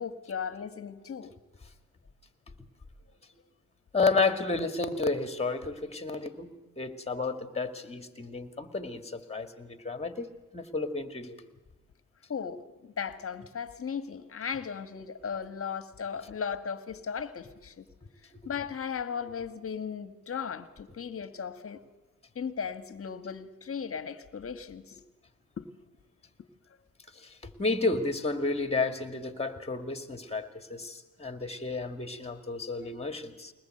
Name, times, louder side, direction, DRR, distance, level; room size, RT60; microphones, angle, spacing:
voice 1, 0.0-1.3 12.3-17.9 18.5-21.8 22.4-25.0 25.6-25.7 26.4-26.5, left 6 dB, 40° left, 11 dB, 1.7 m, -36 dB
voice 2, 3.9-11.4 27.1-33.5, left 3 dB, 15° left, 8 dB, 2.4 m, -31 dB
22.0 x 19.5 x 7.9 m, 1.2 s
supercardioid pair, 75°, 36 cm